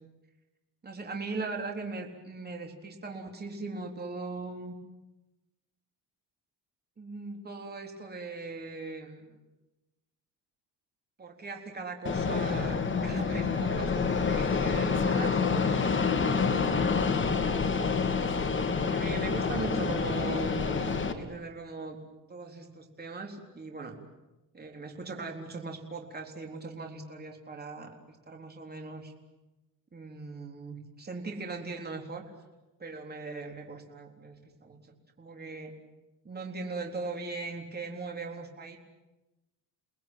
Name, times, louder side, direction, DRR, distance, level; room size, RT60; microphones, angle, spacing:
voice 1, 0.8-4.7 7.0-9.4 11.2-15.4 16.1-16.6 16.8-17.6 18.9-22.0 22.3-24.0 24.5-29.1 29.9-32.2 32.8-34.8 35.2-35.7 36.2-38.8, right 3 dB, 25° right, 2 dB, 3.9 m, -39 dB
Fixed-wing aircraft airplane, 12.1-21.1, left 5 dB, 30° left, 2.4 m, -27 dB
30.0 x 20.0 x 9.3 m, 1.0 s
cardioid pair, 130°, 41 cm